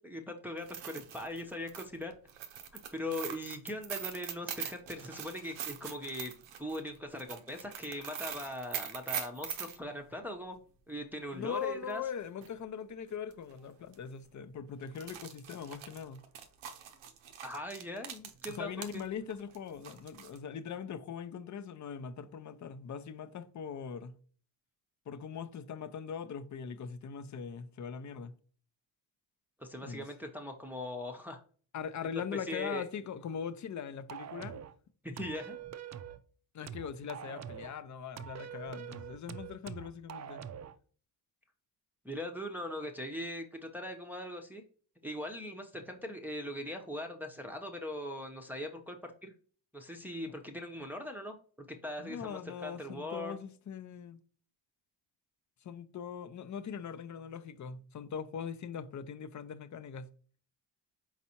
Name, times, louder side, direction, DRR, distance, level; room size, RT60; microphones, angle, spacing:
voice 1, 0.0-2.1 2.9-6.3 6.6-10.6 10.9-12.0 17.4-19.1 29.6-31.4 32.1-32.8 35.0-35.6 42.0-44.6 45.0-49.3 49.7-51.4 51.8-53.4, left 1 dB, 5° right, 0.7 m, -40 dB
sound 1, 0.6-9.8 11.9-12.0 12.4-12.5 13.3-13.5 13.8-13.9 14.8-19.0 19.3-20.4, right 9 dB, 80° right, 0.7 m, -42 dB
voice 2, 11.3-16.2 18.5-24.2 25.1-28.3 29.8-30.1 31.7-34.6 36.5-40.4 52.0-54.2 55.6-60.1, left 7 dB, 40° left, 0.6 m, -41 dB
sound 2, 34.1-34.7 35.2-36.2 36.7-37.8 38.2-40.8, right 9 dB, 40° right, 0.5 m, -44 dB
4.5 x 4.1 x 2.9 m
supercardioid pair, 60°, 46 cm